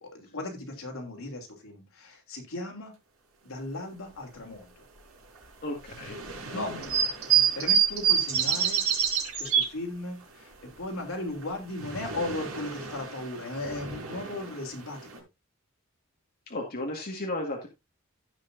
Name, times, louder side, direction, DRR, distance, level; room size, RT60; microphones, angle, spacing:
voice 1, 0.0-2.9 3.4-4.8 6.5-8.9 9.4-15.1, left 2 dB, 70° left, 2 dB, 3.2 m, -37 dB
voice 2, 5.6-6.2 16.5-17.7, left 1 dB, 45° left, 0 dB, 1.8 m, -34 dB
sound 1, 5.9-9.7 11.4-15.2, right 8 dB, 90° right, 4.8 m, -28 dB
16.5 x 6.0 x 2.6 m, 0.23 s
head